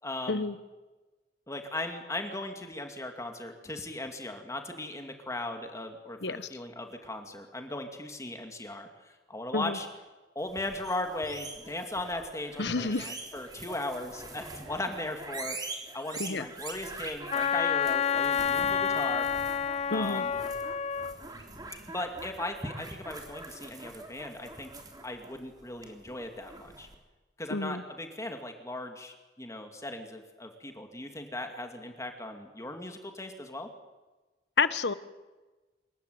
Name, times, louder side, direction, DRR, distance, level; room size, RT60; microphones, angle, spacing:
voice 1, 0.0-0.5 1.5-9.9 10.4-15.6 15.9-19.3 19.9-20.3 21.9-24.7 25.0-26.9 27.4-33.7, left 2 dB, 20° left, 5 dB, 2.3 m, -38 dB
sound 1, 10.4-26.9, right 3 dB, 25° right, 3.5 m, -44 dB
voice 2, 12.6-13.1 16.2-16.5 19.9-20.2 27.5-27.8 34.6-34.9, left 4 dB, 75° left, 14 dB, 1.2 m, -29 dB
Wind instrument woodwind instrument, 17.3-21.2, left 7 dB, 35° left, 0.8 m, -29 dB
26.0 x 15.0 x 9.2 m, 1.2 s
head